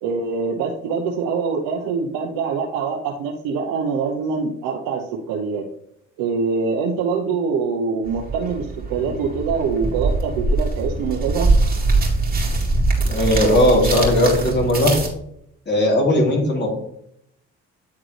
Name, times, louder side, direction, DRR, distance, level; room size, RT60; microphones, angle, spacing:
voice 1, 0.0-5.6 6.2-11.5, right 5 dB, 85° right, 1 dB, 0.8 m, -24 dB
sound 1, 8.1-15.1, right 2 dB, 30° right, 2.2 m, -22 dB
voice 2, 13.1-14.9 15.7-16.7, left 1 dB, 35° left, -1 dB, 2.8 m, -17 dB
9.3 x 3.8 x 3.2 m, 0.72 s
supercardioid pair, 75°, 32 cm